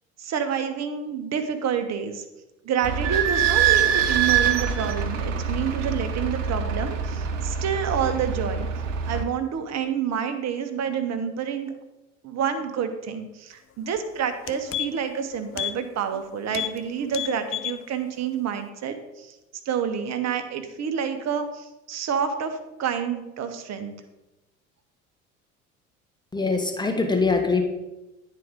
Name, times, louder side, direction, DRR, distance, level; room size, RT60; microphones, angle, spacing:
voice 1, 0.2-2.2 2.6-8.7 9.1-11.7 12.2-19.4 19.6-23.9, right 7 dB, 45° right, 9 dB, 1.2 m, -28 dB
Idling / Squeak, 2.8-9.2, right 7 dB, 80° right, 0.9 m, -24 dB
sound 1, 13.9-14.0 14.3-15.2 15.5-15.8 16.1-16.2 16.5-16.8 17.1-17.8 18.2-18.3, left 12 dB, 35° left, 0.6 m, -31 dB
voice 2, 26.3-27.6, left 4 dB, 10° left, 4 dB, 1.6 m, -23 dB
9.7 x 4.7 x 5.2 m, 1.0 s
hypercardioid pair, 70°, 37 cm